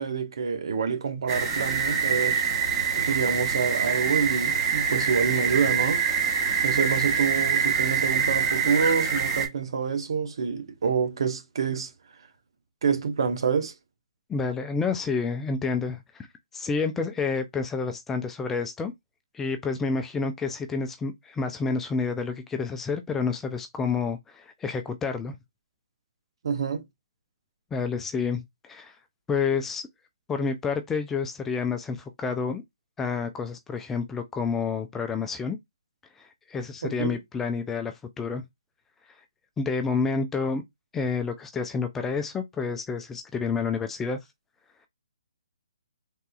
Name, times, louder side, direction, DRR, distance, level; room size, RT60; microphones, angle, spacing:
voice 1, 0.0-2.4 3.0-6.0 6.6-11.9 12.8-13.7 26.4-26.8 36.8-37.2, right 6 dB, 60° right, 0.8 m, -27 dB
sound 1, 1.3-9.5, right 6 dB, 25° right, 1.2 m, -25 dB
voice 2, 14.3-16.3 16.5-18.9 19.3-25.4 27.7-29.0 29.3-29.8 30.3-32.6 33.0-35.6 36.2-38.4 39.6-40.6 40.9-44.2, left 5 dB, 10° left, 0.3 m, -29 dB
3.5 x 2.7 x 2.3 m
hypercardioid pair, 150°, 3 cm